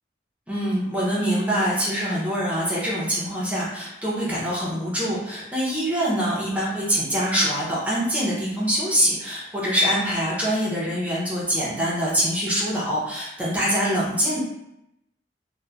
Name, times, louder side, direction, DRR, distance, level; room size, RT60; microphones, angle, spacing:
voice 1, 0.5-14.4, equal, 10° right, -7 dB, 0.6 m, -24 dB
2.9 x 2.1 x 2.4 m, 0.84 s
head